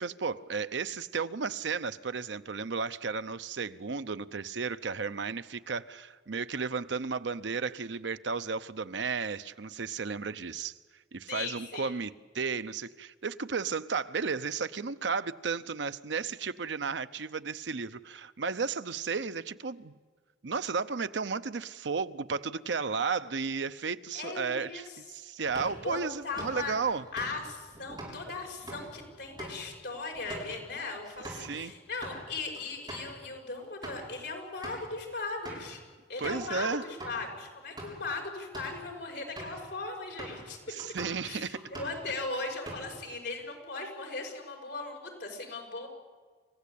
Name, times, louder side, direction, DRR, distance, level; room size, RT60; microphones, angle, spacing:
voice 1, 0.0-10.7 11.1-19.9 20.4-27.0 31.4-31.7 36.2-36.8 40.7-41.6, right 5 dB, 75° right, 0.7 m, -33 dB
voice 2, 11.3-12.0 24.1-25.0 25.7-26.8 27.1-35.8 36.1-40.6 41.2-45.9, left 3 dB, 70° left, 5.7 m, -38 dB
sound 1, 25.4-31.5 31.9-32.2 32.6-32.7 32.9-33.1 33.6-34.1 34.6-34.9 35.4-35.7 36.2-36.5 37.0-37.2 37.6-38.1 38.4-38.8 39.4-39.6 40.2-40.5 40.8-41.2 41.5-42.1 42.4-43.1, right 1 dB, 25° right, 7.8 m, -44 dB
28.0 x 16.0 x 8.5 m
head